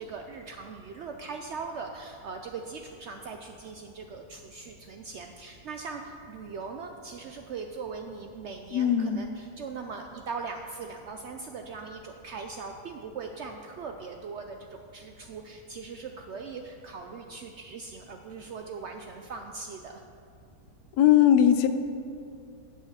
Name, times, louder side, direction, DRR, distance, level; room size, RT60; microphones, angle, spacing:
voice 1, 0.0-20.0, right 4 dB, 70° right, 4 dB, 0.6 m, -40 dB
voice 2, 8.7-9.2 21.0-21.7, left 10 dB, 80° left, 9 dB, 1.1 m, -20 dB
8.3 x 6.5 x 6.3 m, 2.3 s
omnidirectional pair, 1.6 m